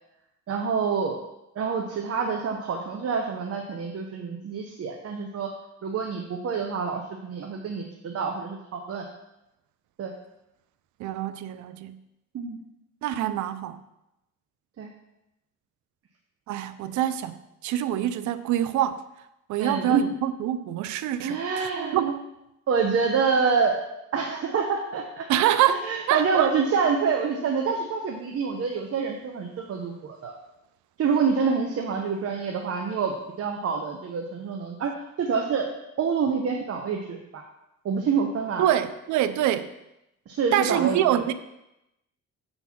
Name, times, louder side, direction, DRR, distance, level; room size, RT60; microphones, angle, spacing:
voice 1, 0.5-1.2 1.5-5.5 5.8-9.0 10.0-10.1 12.3-12.6 14.8-14.9 19.6-20.0 21.2-22.1 22.7-23.8 24.1-25.3 25.7-30.3 31.0-34.9 35.2-35.7 36.0-37.4 37.8-38.7 40.3-41.2, right 5 dB, 50° right, 2 dB, 0.9 m, -27 dB
voice 2, 11.0-12.0 13.0-13.8 16.5-19.0 19.5-22.2 25.3-26.5 38.6-39.7 40.5-41.3, right 11 dB, 75° right, 13 dB, 0.5 m, -25 dB
6.9 x 4.0 x 6.0 m, 0.89 s
cardioid pair, 90°, 30 cm